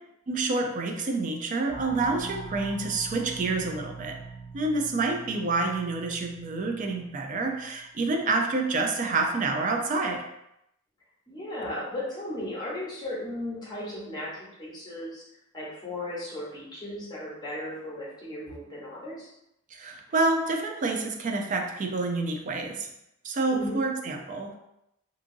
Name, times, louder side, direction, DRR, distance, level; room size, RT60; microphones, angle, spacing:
voice 1, 0.3-4.2 4.5-10.2 19.7-22.9 23.2-24.6, right 3 dB, 40° right, 3 dB, 0.4 m, -28 dB
sound 1, 1.7-8.0, right 4 dB, ahead, 0.8 m, -43 dB
voice 2, 11.3-15.2 15.5-19.3 23.5-23.8, left 1 dB, 20° left, -7 dB, 1.0 m, -36 dB
2.7 x 2.6 x 2.6 m, 0.82 s
head